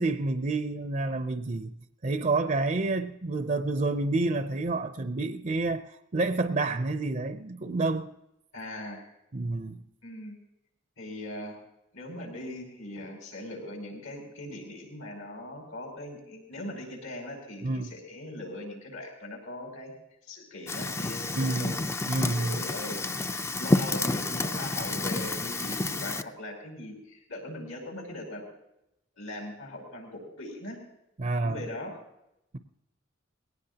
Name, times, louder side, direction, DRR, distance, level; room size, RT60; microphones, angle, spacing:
voice 1, 0.0-1.7 2.0-8.1 9.3-9.8 17.6-17.9 21.4-21.8 22.1-22.6 31.2-31.6, right 2 dB, 40° right, 0.6 m, -29 dB
voice 2, 8.5-9.1 10.0-10.4 11.0-11.6 11.9-19.9 20.3-21.8 22.3-23.0 23.6-28.4 29.2-30.8 31.4-31.9, left 1 dB, 85° left, 6.0 m, -40 dB
Fire, 20.7-26.2, left 2 dB, 15° left, 0.4 m, -30 dB
20.5 x 17.5 x 2.9 m
head